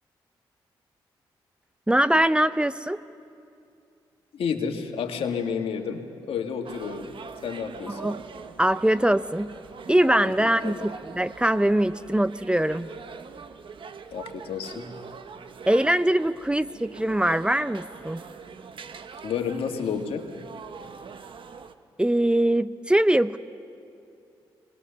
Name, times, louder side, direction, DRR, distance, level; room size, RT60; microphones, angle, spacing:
voice 1, 1.9-3.0 7.9-8.2 8.6-9.6 9.9-12.9 15.7-18.2 22.0-23.4, right 1 dB, 10° right, 14 dB, 0.6 m, -22 dB
voice 2, 4.3-6.0 6.3-7.1 7.4-8.1 10.6-10.9 14.1-15.0 19.2-20.2, left 6 dB, 75° left, 4 dB, 1.7 m, -30 dB
sound 1, 6.6-21.7, right 6 dB, 60° right, 1.0 m, -43 dB
20.5 x 19.5 x 6.8 m, 2.6 s
supercardioid pair, 50°, 10 cm